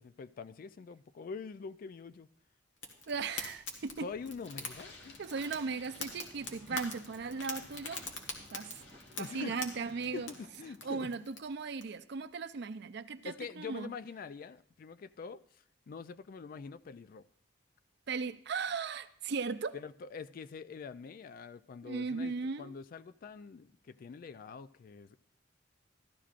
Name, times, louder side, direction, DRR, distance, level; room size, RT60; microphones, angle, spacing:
voice 1, 0.0-2.3 4.0-5.2 6.7-6.8 9.2-11.1 13.2-17.3 19.7-25.2, left 5 dB, 50° left, 0.3 m, -45 dB
Fire, 2.8-11.8, left 3 dB, 90° left, 1.5 m, -45 dB
voice 2, 3.1-4.1 5.2-8.0 8.5-8.8 9.2-10.3 10.8-13.9 18.1-19.8 21.8-22.7, right 4 dB, 60° right, 0.5 m, -37 dB
sound 1, 4.4-10.4, left 2 dB, 70° left, 1.2 m, -55 dB
sound 2, 5.8-11.1, right 1 dB, 40° right, 0.9 m, -59 dB
14.0 x 11.5 x 2.5 m
head